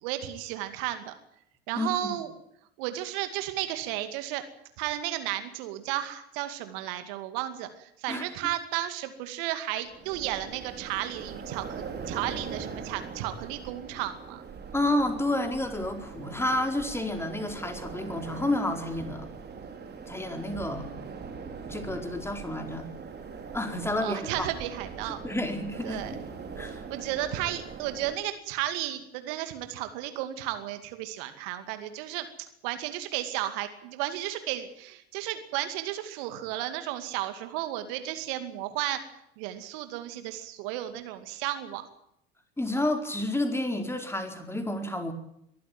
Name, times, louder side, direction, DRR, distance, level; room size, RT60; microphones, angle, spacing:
voice 1, 0.0-1.1 1.7-2.3 2.8-4.4 4.8-14.4 24.0-25.2 25.8-26.1 26.9-39.0 39.4-41.8, right 13 dB, 60° right, 9 dB, 2.4 m, -33 dB
voice 2, 1.7-2.1 8.1-8.2 14.7-19.3 20.1-20.9 21.7-22.9 23.5-24.5 25.1-26.2 26.6-26.8 42.6-45.1, left 1 dB, 10° left, 5 dB, 4.7 m, -30 dB
sound 1, 9.8-28.1, right 5 dB, 35° right, 5.0 m, -41 dB
23.0 x 14.5 x 9.2 m, 0.76 s
figure-of-eight pair, 70°, 30 cm